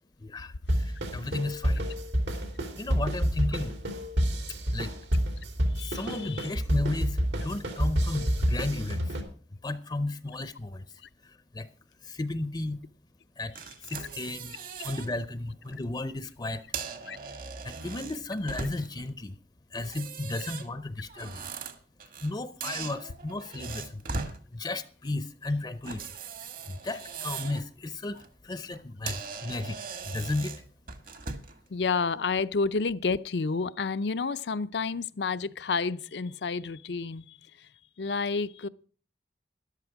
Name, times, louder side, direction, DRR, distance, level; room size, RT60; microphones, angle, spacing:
voice 1, 0.2-2.0 2.8-3.7 4.7-4.9 5.8-9.2 9.6-11.7 12.0-12.8 13.4-13.5 13.8-14.5 14.8-16.6 17.6-19.4 19.7-21.5 22.2-26.0 26.7-30.6, left 2 dB, 25° left, 0.6 m, -34 dB
sound 1, 0.7-9.2, equal, 85° right, 3.0 m, -29 dB
voice 2, 5.7-6.5 17.1-17.2 31.7-37.7 38.0-38.7, left 4 dB, 70° left, 0.6 m, -30 dB
sound 2, 13.6-15.1 15.5-15.8 16.5-19.1 19.8-22.3 22.6-24.4 25.8-27.6 28.0-28.3 28.7-28.8 29.1-31.6, right 4 dB, 55° right, 1.4 m, -39 dB
13.0 x 11.5 x 4.7 m
head